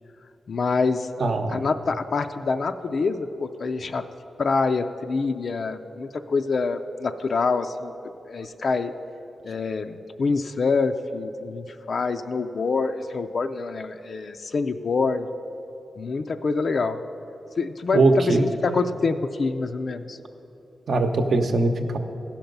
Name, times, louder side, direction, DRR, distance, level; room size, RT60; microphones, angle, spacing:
voice 1, 0.5-1.1 1.5-4.0 4.4-7.9 8.2-8.9 9.4-15.3 16.0-17.0 17.6-20.2, left 4 dB, 55° left, 7 dB, 0.4 m, -26 dB
voice 2, 1.2-1.6 17.9-18.4 20.9-22.0, right 3 dB, 65° right, 5 dB, 0.8 m, -21 dB
15.5 x 5.8 x 5.3 m, 3.0 s
cardioid pair, 85°, 0 cm